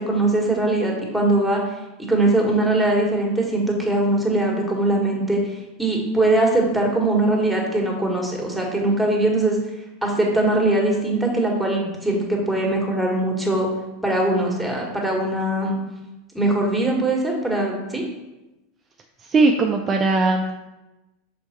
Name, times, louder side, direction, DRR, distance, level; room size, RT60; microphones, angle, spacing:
voice 1, 0.0-1.6 2.0-9.6 10.0-13.7 14.0-15.8 16.3-18.0, right 2 dB, ahead, 0 dB, 1.8 m, -21 dB
voice 2, 19.3-20.5, right 3 dB, 30° right, 2 dB, 0.5 m, -19 dB
6.3 x 4.2 x 4.4 m, 1.0 s
hypercardioid pair, 85°, 0 cm